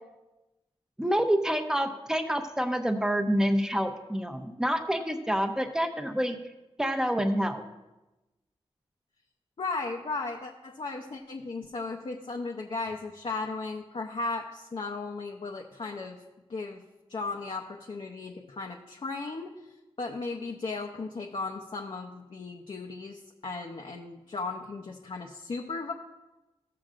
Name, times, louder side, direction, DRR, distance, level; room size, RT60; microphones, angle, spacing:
voice 1, 1.0-6.4 6.8-7.6, equal, 5° right, 6 dB, 0.7 m, -27 dB
voice 2, 9.6-16.2 16.5-16.8 17.1-19.6 20.0-25.9, left 3 dB, 60° left, 1 dB, 0.7 m, -36 dB
14.0 x 7.6 x 2.5 m, 1.0 s
wide cardioid pair, 110°, 11 cm